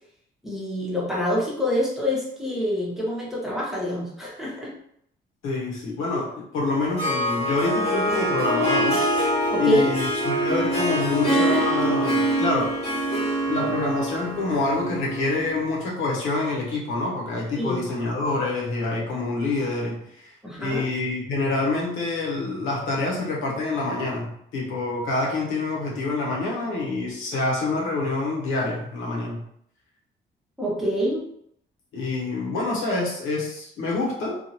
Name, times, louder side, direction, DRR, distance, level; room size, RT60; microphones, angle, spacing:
voice 1, 0.4-4.7 9.5-9.9 17.6-17.8 20.4-20.9 30.6-31.2, left 1 dB, ahead, -6 dB, 1.1 m, -26 dB
voice 2, 5.4-9.0 9.6-12.8 13.5-20.3 20.6-29.5 31.9-34.4, left 3 dB, 85° left, -3 dB, 1.0 m, -26 dB
Harp, 6.7-15.7, right 1 dB, 30° left, 1.3 m, -24 dB
2.7 x 2.5 x 2.8 m, 0.70 s
cardioid pair, 90°, 20 cm